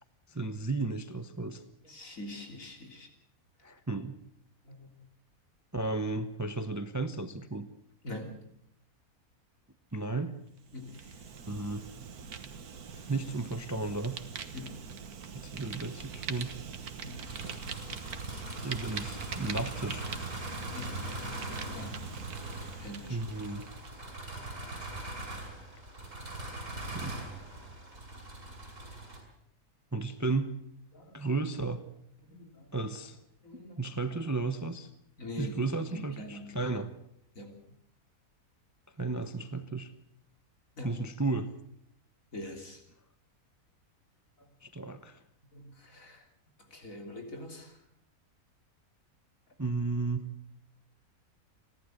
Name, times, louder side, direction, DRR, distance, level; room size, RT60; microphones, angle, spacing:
voice 1, 0.3-1.6 3.6-4.2 5.7-7.7 9.9-10.4 11.5-11.9 12.9-14.2 15.4-16.5 18.6-20.1 23.1-23.7 26.9-27.2 29.9-30.5 31.1-31.8 32.7-33.2 33.5-34.9 35.4-36.9 39.0-39.9 40.8-41.5 44.6-45.2 49.6-50.3, right 3 dB, 15° right, 10 dB, 0.8 m, -34 dB
voice 2, 1.8-3.1 3.6-3.7 4.7-4.9 8.0-8.4 10.7-11.2 14.5-14.8 17.0-17.2 20.7-21.0 21.7-22.0 22.8-23.2 30.9-31.2 32.3-32.7 33.4-33.8 35.2-35.6 35.9-36.6 37.4-37.5 40.8-41.0 42.3-42.8 45.5-46.2 46.7-47.8, left 2 dB, 60° left, 4 dB, 3.8 m, -44 dB
Fire, 10.6-23.9, right 6 dB, 80° right, 1.8 m, -43 dB
sound 1, 17.2-29.2, right 2 dB, 55° right, 6.1 m, -41 dB
30.0 x 12.0 x 8.0 m, 0.75 s
omnidirectional pair, 1.6 m